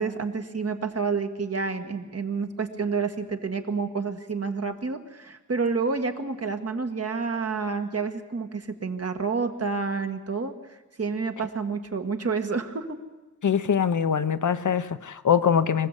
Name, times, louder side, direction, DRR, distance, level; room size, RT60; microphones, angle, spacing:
voice 1, 0.0-12.8, right 4 dB, 50° right, 5 dB, 1.8 m, -29 dB
voice 2, 13.4-15.9, left 7 dB, 70° left, 10 dB, 1.0 m, -23 dB
25.0 x 15.5 x 8.3 m, 1.2 s
wide cardioid pair, 135°, 31 cm